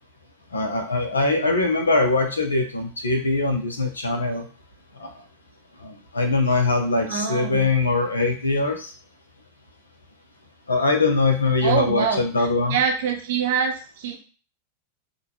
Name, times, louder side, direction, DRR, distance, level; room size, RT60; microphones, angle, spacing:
voice 1, 0.5-4.5 5.0-5.1 5.8-8.9 10.7-12.8, left 3 dB, 75° left, 5 dB, 0.7 m, -22 dB
voice 2, 7.1-7.7 11.6-14.2, right 6 dB, 55° right, 4 dB, 0.7 m, -25 dB
3.6 x 2.3 x 2.9 m, 0.37 s
figure-of-eight pair, 90°, 0 cm